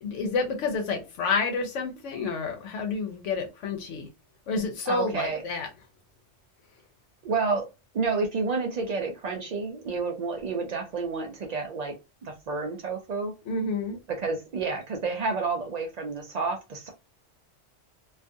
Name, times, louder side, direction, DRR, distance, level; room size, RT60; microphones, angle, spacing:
voice 1, 0.0-4.1 4.5-5.7 13.5-14.0, left 4 dB, 85° left, 0.9 m, -29 dB
voice 2, 4.9-5.4 7.2-7.7 7.9-12.0 12.2-13.3 14.1-16.9, right 4 dB, 65° right, 0.4 m, -30 dB
2.4 x 2.3 x 2.5 m
omnidirectional pair, 1.2 m